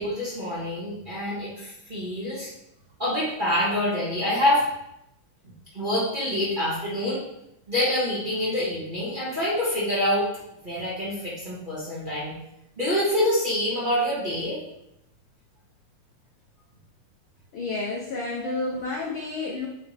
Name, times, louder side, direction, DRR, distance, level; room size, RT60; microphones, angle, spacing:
voice 1, 0.0-2.5 3.0-4.6 5.7-7.2 7.7-10.3 10.6-12.3 12.8-14.6 18.4-18.5, left 1 dB, 20° right, -8 dB, 1.4 m, -26 dB
voice 2, 17.5-19.7, left 3 dB, 70° left, -3 dB, 1.1 m, -30 dB
8.1 x 4.3 x 3.4 m, 0.82 s
omnidirectional pair, 3.4 m